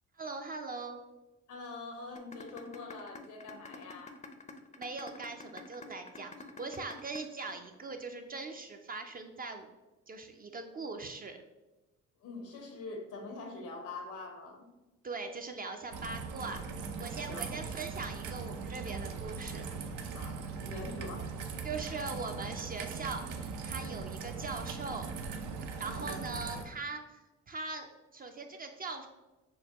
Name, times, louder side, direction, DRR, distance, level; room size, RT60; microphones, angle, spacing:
voice 1, 0.2-1.0 4.8-9.7 10.1-11.4 15.0-16.6 17.0-19.7 21.6-25.1 25.6-29.1, right 3 dB, 30° right, 5 dB, 0.4 m, -41 dB
voice 2, 1.5-4.2 12.2-14.7 17.3-17.5 20.1-21.6 25.9-26.2, left 3 dB, 85° left, 2 dB, 1.0 m, -44 dB
sound 1, 2.2-8.2, left 3 dB, 25° left, 0.5 m, -48 dB
Raindrop / Trickle dribble, 15.9-26.6, right 5 dB, 85° right, 0.6 m, -40 dB
6.3 x 2.2 x 2.9 m, 1.1 s
cardioid pair, 90°, 30 cm